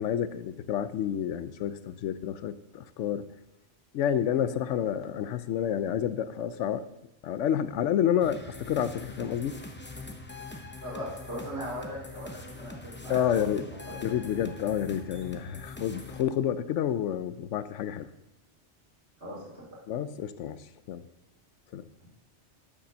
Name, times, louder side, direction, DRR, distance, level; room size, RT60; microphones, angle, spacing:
voice 1, 0.0-3.3 3.9-6.9 7.2-9.6 13.1-13.6 14.0-18.1 19.9-21.0 21.7-21.9, left 9 dB, 85° left, 14 dB, 0.9 m, -29 dB
sound 1, 8.2-16.2, left 2 dB, 15° left, 0.5 m, -43 dB
voice 2, 10.8-14.2 19.2-19.7, equal, 70° right, -5 dB, 3.7 m, -39 dB
10.0 x 5.4 x 6.3 m, 0.90 s
omnidirectional pair, 1.2 m